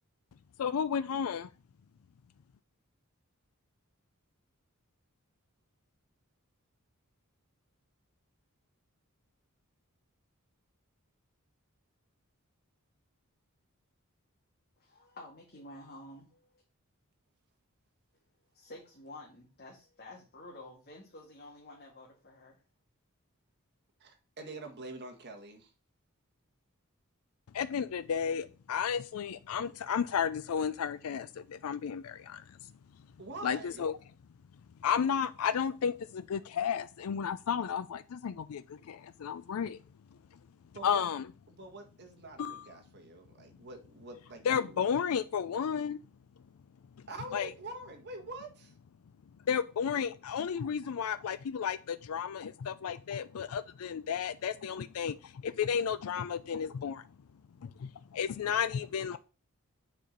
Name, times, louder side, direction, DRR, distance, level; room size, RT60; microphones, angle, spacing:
voice 1, 0.6-1.5 27.5-32.4 33.4-34.0 34.8-39.8 40.8-41.2 42.4-42.7 44.5-46.0 47.3-47.5 49.5-57.0 57.6-59.2, left 7 dB, 75° left, 0.4 m, -33 dB
voice 2, 14.8-16.6 18.5-22.6, left 2 dB, 45° left, 1.8 m, -50 dB
voice 3, 24.0-25.7 33.2-33.9 40.7-41.0 41.5-44.8 47.1-48.7, right 2 dB, 50° right, 1.6 m, -45 dB
7.4 x 4.3 x 5.2 m
head